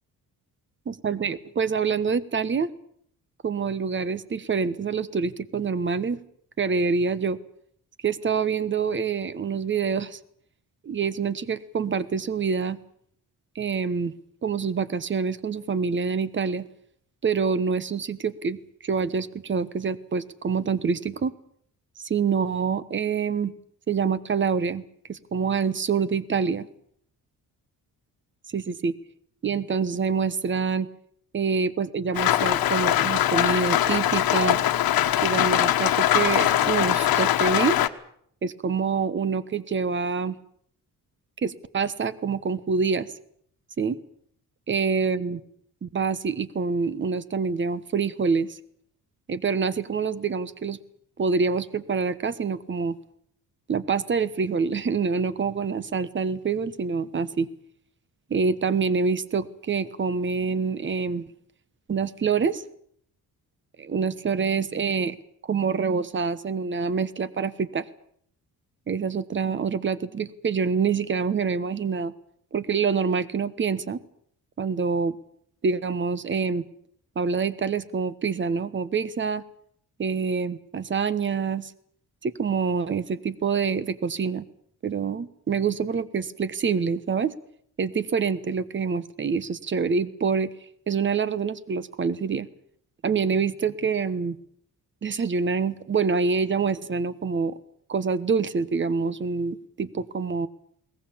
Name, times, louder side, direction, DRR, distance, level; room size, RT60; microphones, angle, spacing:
voice 1, 0.9-2.7 3.4-6.2 6.6-7.4 8.0-10.2 10.8-12.8 13.5-14.1 14.4-16.6 17.2-21.3 22.0-23.5 23.9-24.8 25.1-26.7 28.5-28.9 29.4-30.9 31.3-34.6 35.2-37.8 38.4-40.4 41.4-43.1 43.8-44.0 44.7-45.4 45.8-48.6 49.3-50.8 51.2-53.0 53.7-57.5 58.3-61.3 61.9-62.6 63.8-65.2 65.5-67.9 68.9-72.1 72.5-74.0 74.6-75.2 75.6-76.6 77.1-79.4 80.0-81.7 82.2-84.4 84.8-87.3 87.8-90.5 90.9-92.5 93.0-94.4 95.0-97.5 97.9-100.5, right 5 dB, 35° right, 17 dB, 1.2 m, -26 dB
Rain, 32.2-37.9, left 12 dB, 85° left, 1.4 m, -22 dB
21.5 x 19.0 x 8.7 m, 0.66 s
cardioid pair, 140°, 35 cm